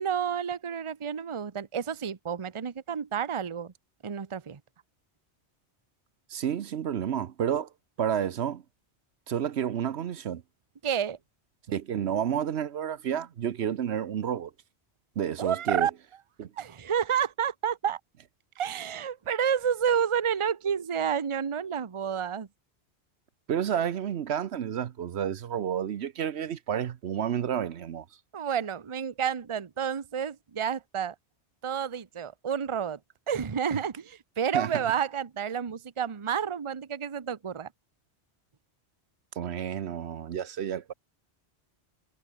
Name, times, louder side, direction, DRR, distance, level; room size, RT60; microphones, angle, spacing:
voice 1, 0.0-3.7 4.0-4.6 10.8-11.2 15.4-15.9 16.6-18.0 18.6-22.5 28.3-31.1 31.6-33.0 33.3-37.7, right 8 dB, 30° right, 0.8 m, -30 dB
voice 2, 6.3-7.7 8.0-8.6 9.3-10.4 11.7-14.5 15.2-15.9 16.4-16.5 23.5-28.0 33.7-33.8 34.5-34.8 39.4-40.9, right 9 dB, 70° right, 1.0 m, -30 dB
omnidirectional pair, 1.1 m